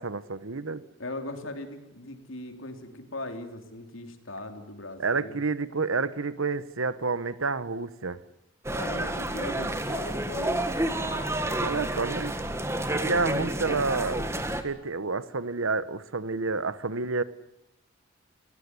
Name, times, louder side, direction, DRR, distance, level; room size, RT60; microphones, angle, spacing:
voice 1, 0.0-0.8 5.0-8.2 11.6-12.3 12.9-14.3 14.6-17.2, right 4 dB, 85° right, 15 dB, 1.1 m, -29 dB
voice 2, 1.0-5.4 8.7-10.7 13.0-13.5, left 2 dB, 75° left, 5 dB, 3.4 m, -39 dB
sound 1, 8.6-14.6, right 1 dB, 15° right, 1.6 m, -30 dB
28.5 x 17.0 x 9.8 m, 0.90 s
head